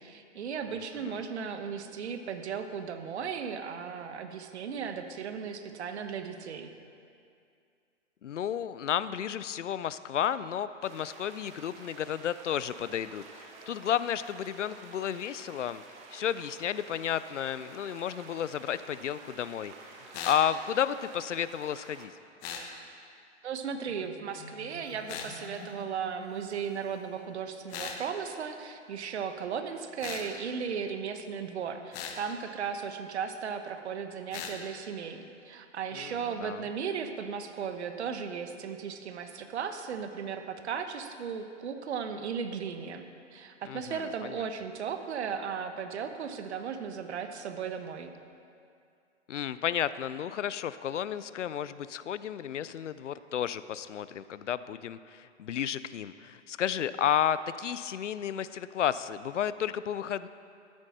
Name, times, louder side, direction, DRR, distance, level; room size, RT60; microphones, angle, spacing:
voice 1, 0.0-6.7 23.4-43.1 43.3-48.1, right 6 dB, 60° right, 8 dB, 1.0 m, -36 dB
voice 2, 8.2-15.8 16.1-22.1 35.9-36.6 43.7-44.4 49.3-60.3, left 9 dB, 75° left, 15 dB, 0.5 m, -32 dB
sound 1, 10.8-22.1, right 4 dB, 20° right, 0.8 m, -50 dB
sound 2, 20.1-20.4 22.4-22.7 25.1-25.3 27.7-28.0 30.0-30.3 31.9-32.2 34.3-34.6, left 7 dB, 25° left, 0.9 m, -38 dB
Marimba xylophone, 23.8-27.2, left 2 dB, 40° left, 1.7 m, -50 dB
13.0 x 9.7 x 4.2 m, 2.4 s
figure-of-eight pair, 125°, 37 cm